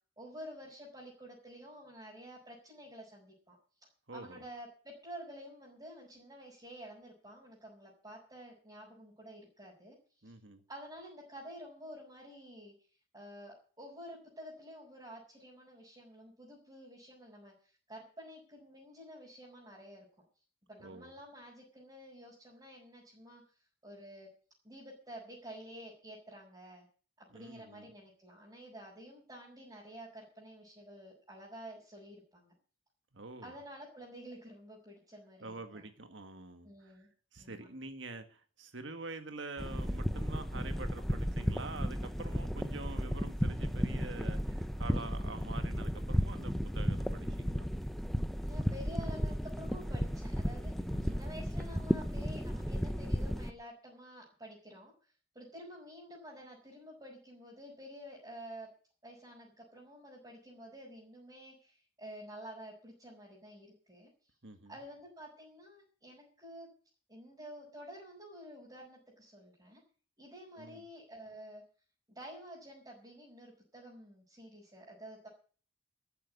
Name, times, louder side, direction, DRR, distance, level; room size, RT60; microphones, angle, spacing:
voice 1, 0.2-3.6 4.1-10.0 10.2-10.3 10.7-12.7 13.1-20.1 20.7-23.4 23.8-24.3 24.6-26.9 27.2-32.5 33.4-35.9 36.6-37.1 37.4-37.7 48.4-54.9 55.4-58.7 59.0-64.1 64.7-66.7 67.1-69.8 70.2-71.6 72.1-75.3, equal, 20° right, -6 dB, 5.2 m, -50 dB
voice 2, 4.1-4.4 10.2-10.6 20.8-21.1 27.3-27.9 33.1-33.5 35.4-37.1 37.3-47.7 50.9-51.2 64.4-64.8 70.5-70.8, right 3 dB, 60° right, 8 dB, 1.8 m, -46 dB
sound 1, 39.6-53.5, equal, ahead, 0.9 m, -34 dB
13.5 x 8.8 x 8.4 m, 0.41 s
head